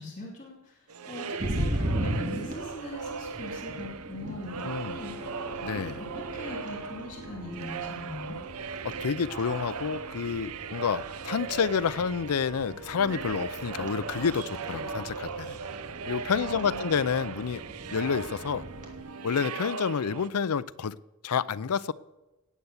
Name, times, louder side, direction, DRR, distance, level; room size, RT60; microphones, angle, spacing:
voice 1, 0.0-5.3 5.7-8.4 16.2-16.9, left 1 dB, 35° left, -4 dB, 2.8 m, -42 dB
sound 1, 0.9-20.3, right 5 dB, 75° right, 0.7 m, -38 dB
sound 2, 1.4-19.0, equal, 35° right, 2.7 m, -39 dB
voice 2, 4.6-5.0 5.6-5.9 8.8-15.6 16.1-17.6 17.9-18.7 19.2-21.0 21.2-21.9, left 6 dB, 85° left, 18 dB, 0.5 m, -29 dB
Bowed string instrument, 4.6-9.7, left 4 dB, 10° left, 3.7 m, -47 dB
18.5 x 8.2 x 7.2 m, 1.1 s
head